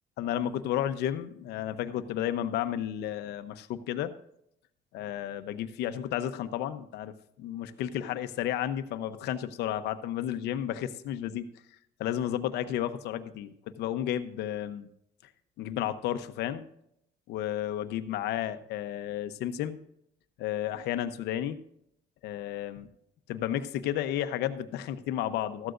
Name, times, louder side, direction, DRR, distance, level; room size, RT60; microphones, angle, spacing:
voice 1, 0.2-4.1 4.9-11.5 12.0-14.9 15.6-16.6 17.3-19.8 20.4-21.6 22.2-22.9 23.3-25.7, left 11 dB, 85° left, 10 dB, 0.9 m, -32 dB
14.0 x 12.5 x 2.6 m, 0.74 s
cardioid pair, 110°, 17 cm